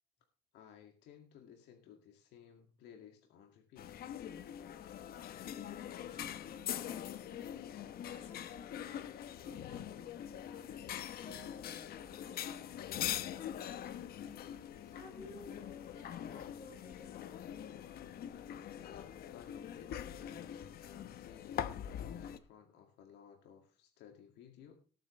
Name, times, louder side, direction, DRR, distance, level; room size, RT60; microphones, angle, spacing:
voice 1, 0.5-4.1 18.9-19.0 19.3-24.7, left 8 dB, 85° left, 3 dB, 2.1 m, -58 dB
sound 1, 3.8-22.4, left 10 dB, 65° left, 1.1 m, -43 dB
voice 2, 5.5-14.5 14.8-17.4 18.8-18.9, left 2 dB, 45° left, 2 dB, 6.7 m, -58 dB
19.0 x 9.0 x 3.2 m, 0.38 s
cardioid pair, 110°, 17 cm